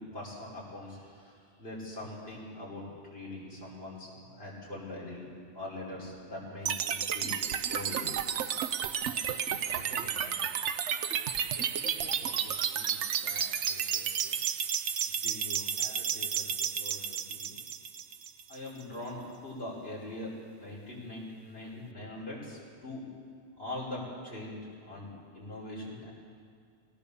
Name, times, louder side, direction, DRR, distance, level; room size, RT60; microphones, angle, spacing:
voice 1, 0.0-5.2 5.5-8.1 18.5-20.3 20.6-23.1 23.6-26.1, left 1 dB, 55° left, -7 dB, 5.4 m, -42 dB
sound 1, 6.7-18.7, right 8 dB, 75° right, 1.1 m, -32 dB
voice 2, 9.6-10.6 11.5-14.3 15.1-17.6, left 1 dB, 85° left, -6 dB, 5.0 m, -49 dB
22.0 x 17.5 x 7.0 m, 2.2 s
omnidirectional pair, 1.2 m